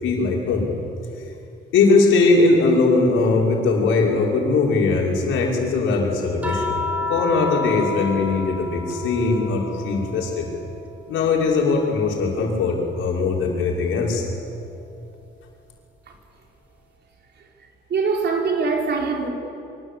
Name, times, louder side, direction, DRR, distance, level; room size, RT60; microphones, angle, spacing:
voice 1, 0.0-0.7 1.7-6.7 7.1-10.4 11.1-14.2, left 3 dB, 80° left, 5.8 m, -20 dB
sound 1, 6.4-10.9 11.3-12.9 14.4-14.6, left 3 dB, 10° right, 4.6 m, -31 dB
voice 2, 17.9-19.3, right 4 dB, 60° right, 4.8 m, -22 dB
25.5 x 25.0 x 8.6 m
cardioid pair, 90°, 20 cm